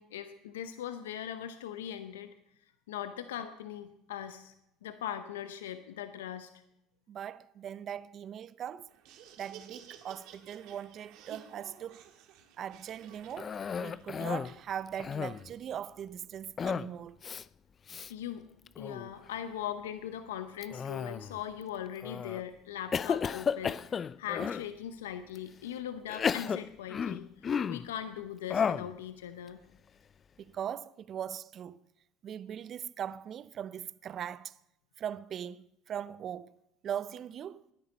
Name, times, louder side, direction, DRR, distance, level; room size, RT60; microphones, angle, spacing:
voice 1, 0.0-2.3 2.9-4.5 4.8-6.5 18.1-18.4 18.8-29.6, left 10 dB, 85° left, 0.7 m, -40 dB
voice 2, 7.1-8.9 9.4-12.1 12.6-17.2 30.4-31.8 32.2-34.6 35.0-36.6 36.8-37.6, right 9 dB, 50° right, 0.5 m, -40 dB
Laughter, 8.9-15.4, right 9 dB, 65° right, 1.6 m, -54 dB
Cough, 13.4-14.6 14.9-15.5 16.6-16.9 17.2-17.4 17.9-18.1 18.7-19.1 20.6-21.4 22.0-22.4 22.9-24.7 25.3-25.4 26.1-27.9 28.5-28.9, left 7 dB, 35° left, 0.4 m, -33 dB
18.5 x 10.5 x 4.1 m
hypercardioid pair, 75°, 0 cm